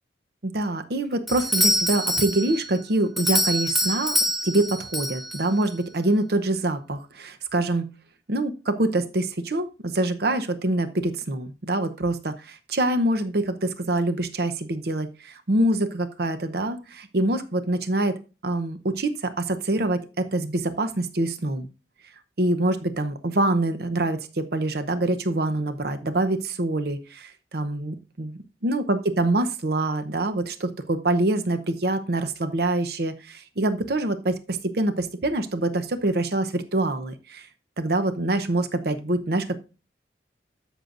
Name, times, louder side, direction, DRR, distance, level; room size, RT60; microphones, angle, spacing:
voice 1, 0.4-4.2 4.4-7.9 8.3-18.1 18.4-21.7 22.4-28.3 28.6-37.5 37.8-39.6, right 2 dB, 60° right, 9 dB, 0.8 m, -25 dB
Doorbell, 1.3-5.7, left 1 dB, ahead, 0.7 m, -26 dB
13.0 x 6.3 x 2.5 m, 0.32 s
head